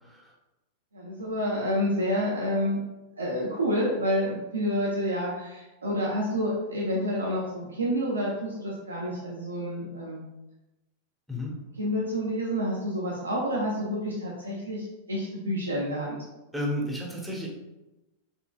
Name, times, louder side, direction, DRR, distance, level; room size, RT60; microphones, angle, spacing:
voice 1, 0.9-2.8 3.2-10.2 11.8-16.2, equal, 85° right, -4 dB, 0.6 m, -29 dB
voice 2, 16.5-17.5, left 1 dB, ahead, -3 dB, 1.0 m, -32 dB
4.3 x 3.1 x 2.2 m, 1.0 s
figure-of-eight pair, 95°, 0 cm